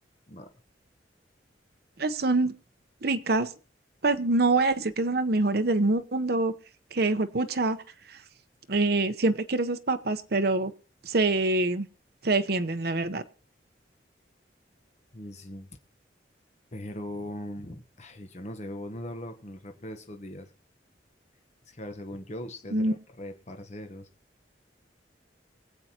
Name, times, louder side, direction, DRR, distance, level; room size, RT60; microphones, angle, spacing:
voice 1, 2.0-2.5 3.0-3.5 4.0-6.5 6.9-7.8 8.1-8.2 8.7-10.7 11.0-11.9 12.2-13.2 22.7-22.9, right 2 dB, 60° right, 0.9 m, -25 dB
voice 2, 15.1-15.7 16.7-20.5 21.7-24.1, left 1 dB, 40° left, 1.1 m, -40 dB
24.0 x 7.9 x 2.9 m
head